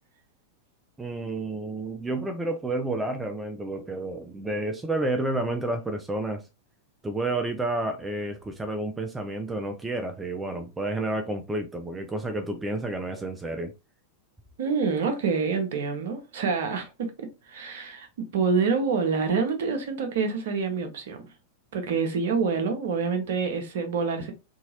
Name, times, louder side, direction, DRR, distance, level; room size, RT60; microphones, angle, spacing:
voice 1, 1.0-6.4 7.0-13.7, right 2 dB, 10° right, 0.3 m, -30 dB
voice 2, 14.6-21.3 21.7-24.3, right 5 dB, 55° right, 0.7 m, -27 dB
2.7 x 2.7 x 2.8 m
figure-of-eight pair, 90°, 0 cm